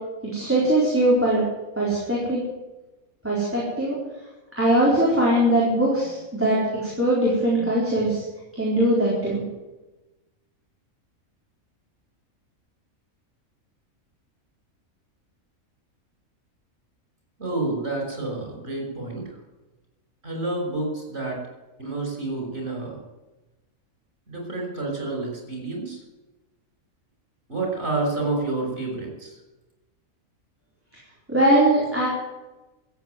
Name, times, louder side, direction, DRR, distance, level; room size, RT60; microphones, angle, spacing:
voice 1, 0.2-1.4 1.8-2.4 3.2-4.0 4.6-8.2 8.6-9.4 31.3-32.1, right 1 dB, 10° right, -7 dB, 4.3 m, -21 dB
voice 2, 17.4-19.4 20.2-21.4 21.8-23.0 24.3-26.0 27.5-29.4, right 2 dB, 50° right, 0 dB, 6.1 m, -29 dB
14.5 x 8.7 x 9.5 m, 1.1 s
omnidirectional pair, 1.4 m